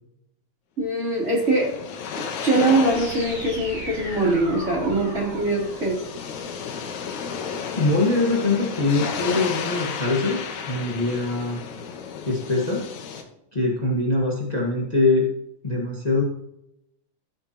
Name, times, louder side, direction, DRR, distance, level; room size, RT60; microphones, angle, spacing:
voice 1, 0.8-1.7 2.4-6.0, right 2 dB, 20° right, -4 dB, 3.5 m, -22 dB
sound 1, 1.0-13.2, left 6 dB, 70° left, 2.4 m, -33 dB
sound 2, 2.9-6.9, right 1 dB, 85° right, 6.6 m, -38 dB
voice 2, 7.8-11.6 12.3-12.9 13.5-15.3 15.6-16.2, left 2 dB, 50° left, -2 dB, 0.5 m, -23 dB
15.0 x 8.9 x 3.0 m, 0.80 s
omnidirectional pair, 3.7 m